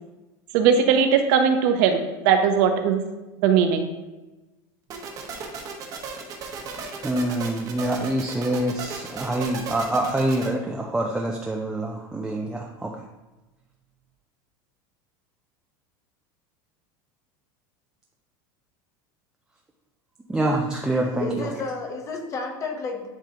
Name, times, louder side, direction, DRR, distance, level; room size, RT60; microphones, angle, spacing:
voice 1, 0.5-3.0 3.4-3.9, right 7 dB, 60° right, 6 dB, 0.8 m, -19 dB
sound 1, 4.9-10.5, right 4 dB, 30° right, 1.0 m, -35 dB
voice 2, 7.0-12.9 20.3-21.5, right 1 dB, 5° right, -1 dB, 0.4 m, -26 dB
voice 3, 21.2-23.1, left 3 dB, 30° left, 3 dB, 0.9 m, -31 dB
10.5 x 3.8 x 2.8 m, 1.1 s
supercardioid pair, 160°, 11 cm